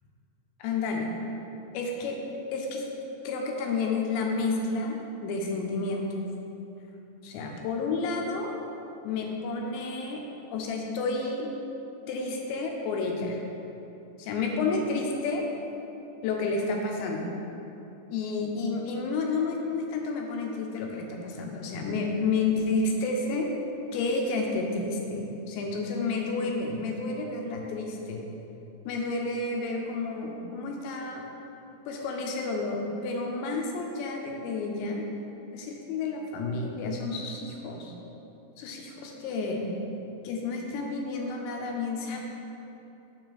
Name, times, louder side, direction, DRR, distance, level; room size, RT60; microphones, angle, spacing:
voice 1, 0.6-1.1 1.7-2.2 2.5-2.8 3.2-5.0 5.2-6.1 7.2-8.6 9.0-10.2 10.5-11.5 12.1-13.4 14.2-15.5 16.2-17.3 18.1-23.5 23.9-28.2 28.9-31.2 31.9-35.0 35.5-37.9 38.6-39.7 40.2-42.2, left 3 dB, 80° left, 1 dB, 2.9 m, -30 dB
7.1 x 6.3 x 4.0 m, 3.0 s
omnidirectional pair, 5.3 m